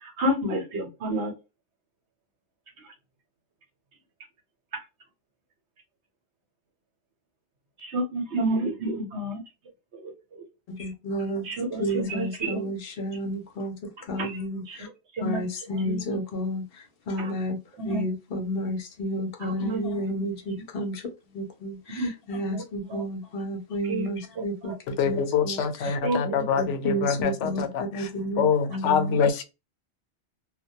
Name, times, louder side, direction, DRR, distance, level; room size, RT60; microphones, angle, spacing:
voice 1, 0.0-1.3 7.8-9.4 9.9-10.1 11.4-12.6 14.2-14.4 14.7-14.9 15.1-15.4 15.8-16.0 17.2-17.3 17.8-18.0 19.4-19.8 21.9-22.1 22.5-22.6 22.9-23.0 23.8-24.1 24.6-24.8 26.0-26.4, right 1 dB, 70° right, 1.1 m, -29 dB
voice 2, 10.7-11.5 11.8-13.8 14.1-14.9 15.2-16.6 17.1-21.0 21.3-26.0 26.2-29.2, equal, 60° left, 0.8 m, -31 dB
voice 3, 25.0-28.1 28.4-29.4, left 7 dB, 85° left, 0.9 m, -25 dB
2.2 x 2.1 x 2.7 m
omnidirectional pair, 1.2 m